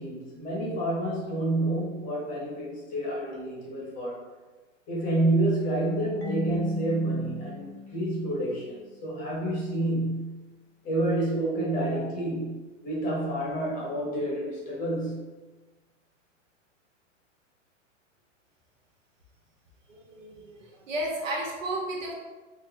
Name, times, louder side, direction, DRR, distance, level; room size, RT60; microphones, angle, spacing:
voice 1, 0.0-4.2 4.9-10.4 10.8-12.6 12.8-15.2, right 1 dB, 20° left, -4 dB, 0.8 m, -29 dB
Marimba xylophone / Wood, 6.2-8.9, left 5 dB, 55° left, 0.9 m, -38 dB
voice 2, 19.9-22.1, right 1 dB, 80° right, -3 dB, 1.4 m, -33 dB
3.9 x 2.5 x 3.4 m, 1.2 s
hypercardioid pair, 145°, 38 cm